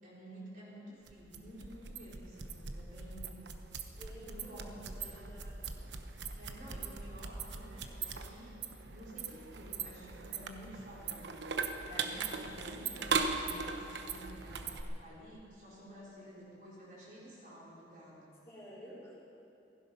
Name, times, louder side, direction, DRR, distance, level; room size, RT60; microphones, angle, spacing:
voice 1, 0.0-3.5 4.1-4.8 5.0-5.3 6.3-11.3 11.8-13.1 13.3-18.2, equal, 50° right, -7 dB, 4.5 m, -51 dB
sound 1, 1.1-14.8, right 5 dB, 80° right, 0.9 m, -39 dB
voice 2, 4.0-5.7 12.7-13.1 18.4-19.1, equal, 15° left, -9 dB, 4.4 m, -52 dB
16.0 x 16.0 x 5.5 m, 2.8 s
head